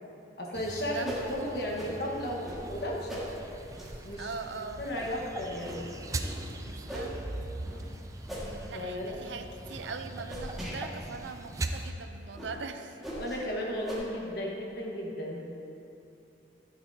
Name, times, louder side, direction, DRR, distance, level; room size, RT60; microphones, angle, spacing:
voice 1, 0.4-3.2 4.0-5.8 8.7-9.4 13.1-15.5, left 1 dB, 55° left, -2 dB, 1.3 m, -35 dB
sound 1, 0.5-11.9, right 2 dB, 15° right, 0.3 m, -41 dB
sound 2, 1.0-1.3 1.7-1.9 2.4-2.6 3.1-3.3 3.7-4.0 4.5-4.6 5.0-5.2 5.6-5.8 6.2-6.4 6.8-7.1 7.6-7.8 8.3-8.5 9.0-9.2 9.6-9.8 10.3-10.8 11.2-11.3 11.7-11.9 12.3-12.5 13.0-13.4 13.9-14.0, equal, ahead, 1.7 m, -40 dB
voice 2, 4.2-4.8 6.6-7.1 8.6-13.0, right 4 dB, 75° right, 8 dB, 0.5 m, -41 dB
11.5 x 9.3 x 2.8 m, 2.7 s
head